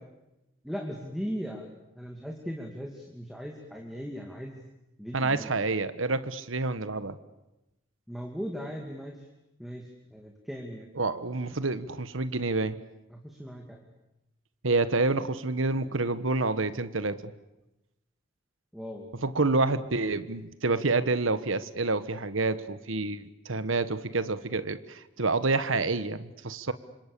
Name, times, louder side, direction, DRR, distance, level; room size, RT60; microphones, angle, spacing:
voice 1, 0.6-4.6 5.0-5.5 8.1-9.1 9.6-9.8 10.1-10.9 13.2-13.8 18.7-19.1, equal, ahead, 1 dB, 2.6 m, -38 dB
voice 2, 5.1-7.2 10.9-12.8 14.6-17.2 19.2-26.7, right 3 dB, 90° right, 13 dB, 1.4 m, -28 dB
29.0 x 26.0 x 6.9 m, 0.93 s
head